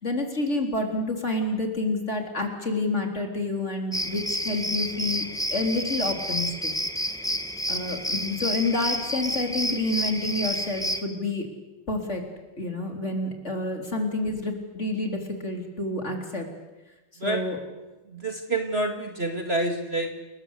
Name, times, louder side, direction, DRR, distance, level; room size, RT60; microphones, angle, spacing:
voice 1, 0.0-5.3 5.5-6.7 7.7-11.5 11.9-12.2 12.6-16.5 17.2-17.6, left 2 dB, 30° left, 3 dB, 4.1 m, -28 dB
sound 1, 3.9-11.0, equal, ahead, 1.3 m, -30 dB
voice 2, 18.1-20.1, right 2 dB, 30° right, 3 dB, 2.5 m, -27 dB
30.0 x 21.0 x 8.3 m, 1.1 s
omnidirectional pair, 2.3 m